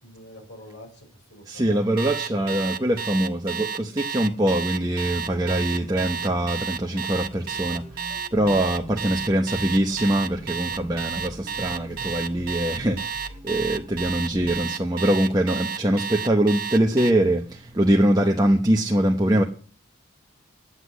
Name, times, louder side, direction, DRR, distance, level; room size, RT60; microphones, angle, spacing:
voice 1, 0.0-1.9, left 1 dB, 60° left, 5.1 m, -46 dB
voice 2, 1.5-8.1 8.3-19.4, right 1 dB, 20° right, 0.9 m, -23 dB
Alarm, 2.0-17.1, right 7 dB, 45° right, 0.7 m, -31 dB
sound 1, 5.1-14.7, right 1 dB, 5° left, 3.6 m, -43 dB
9.7 x 8.2 x 8.2 m
head